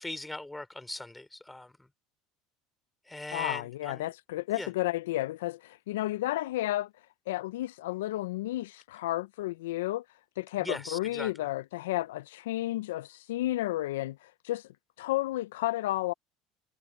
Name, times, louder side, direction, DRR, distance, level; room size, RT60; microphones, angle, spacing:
voice 1, 0.0-1.9 3.1-4.1 4.5-4.7 10.6-11.5, left 2 dB, 10° left, 3.6 m, -40 dB
voice 2, 3.3-6.9 7.3-10.0 10.4-14.7 15.0-16.1, left 16 dB, 85° left, 0.4 m, -32 dB
supercardioid pair, 90°, 0 cm